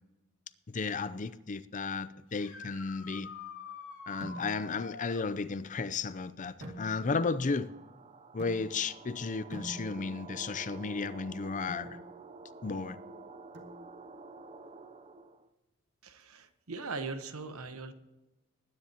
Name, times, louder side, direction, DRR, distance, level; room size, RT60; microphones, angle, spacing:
voice 1, 0.7-3.3 4.1-7.7 8.3-12.0 12.6-13.0, left 4 dB, 35° left, 0.5 m, -34 dB
sound 1, 2.3-5.3 8.6-8.7 10.7-10.8 17.1-17.2, left 5 dB, 65° left, 2.9 m, -46 dB
sound 2, 4.2-4.8 6.6-7.3 8.4-9.0 9.5-10.3 11.7-12.0 13.5-14.2, right 1 dB, 55° right, 2.1 m, -46 dB
sound 3, 7.2-15.5, right 3 dB, 30° right, 0.6 m, -50 dB
voice 2, 16.0-17.9, right 4 dB, 90° right, 1.1 m, -40 dB
20.0 x 10.0 x 2.9 m
head